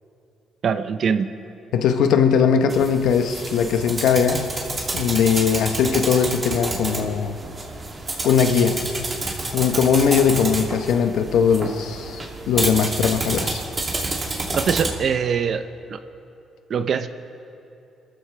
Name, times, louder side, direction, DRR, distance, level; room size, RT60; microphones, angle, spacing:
voice 1, 0.6-1.3 8.6-8.7 14.6-15.6 15.9-16.0 16.7-17.1, right 6 dB, 55° right, 11 dB, 0.8 m, -23 dB
voice 2, 1.7-4.5 4.9-7.3 8.2-8.8 9.5-12.2 12.5-13.6, left 7 dB, 85° left, 7 dB, 1.0 m, -19 dB
sound 1, 2.7-14.9, right 2 dB, 35° right, 2.8 m, -29 dB
28.5 x 14.5 x 3.4 m, 2.8 s
cardioid pair, 90°, 0 cm